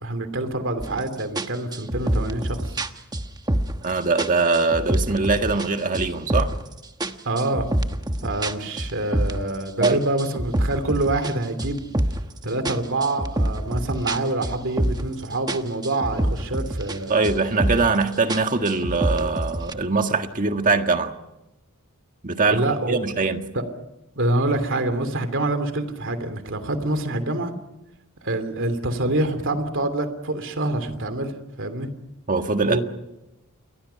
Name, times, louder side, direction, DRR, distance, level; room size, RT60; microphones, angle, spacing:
voice 1, 0.0-2.8 7.2-7.7 8.2-11.8 12.4-17.1 22.5-23.0 23.5-23.6 24.2-27.5 28.2-31.9 32.6-32.8, right 2 dB, 60° right, 9 dB, 3.0 m, -26 dB
sound 1, 0.8-1.0 1.4-3.9 4.2-5.7 5.9-6.7 7.0-9.5 9.8-12.3 12.6-15.2 15.5-17.0 17.2-18.0 18.3-19.7, right 1 dB, 20° right, 1.1 m, -26 dB
voice 2, 3.8-6.5 9.8-10.0 17.1-21.1 22.2-23.4 32.3-32.8, right 3 dB, 35° right, 6 dB, 1.7 m, -22 dB
29.5 x 23.0 x 5.8 m, 0.95 s
head